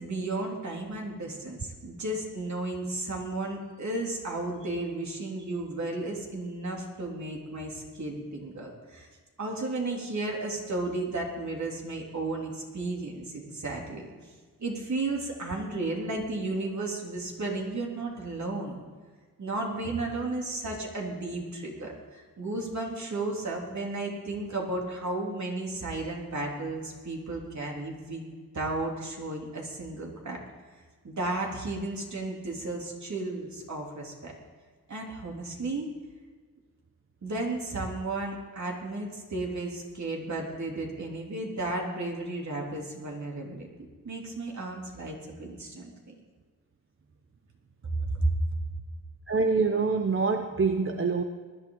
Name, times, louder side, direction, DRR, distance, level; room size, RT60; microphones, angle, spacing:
voice 1, 0.0-9.1 9.4-14.1 14.6-18.8 19.4-28.2 28.5-30.4 31.0-34.3 34.9-35.9 37.2-43.7 44.0-46.1 47.9-48.4, right 2 dB, 50° right, -1 dB, 3.3 m, -33 dB
voice 2, 49.3-51.2, right 4 dB, 35° right, 5 dB, 0.9 m, -25 dB
19.5 x 11.5 x 3.9 m, 1.5 s
cardioid pair, 80°, 35 cm